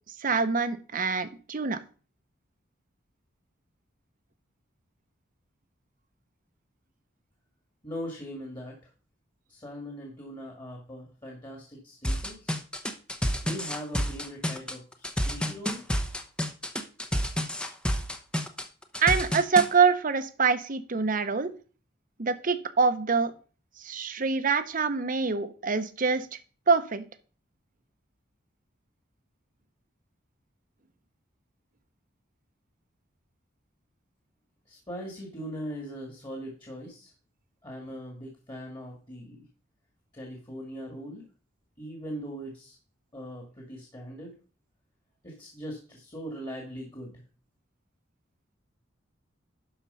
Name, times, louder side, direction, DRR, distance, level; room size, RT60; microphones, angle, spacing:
voice 1, 0.2-1.8 19.0-21.5 22.2-23.3 23.8-26.3 26.7-27.1, right 5 dB, 45° right, 10 dB, 0.9 m, -25 dB
voice 2, 7.8-8.9 9.5-12.6 13.4-15.9 34.7-37.1 37.6-39.4 40.1-41.3 41.8-42.8 43.1-44.3 45.2-47.2, equal, 25° left, 0 dB, 2.0 m, -40 dB
sound 1, 12.0-19.7, equal, 5° left, 0.8 m, -29 dB
11.5 x 4.4 x 5.6 m, 0.39 s
head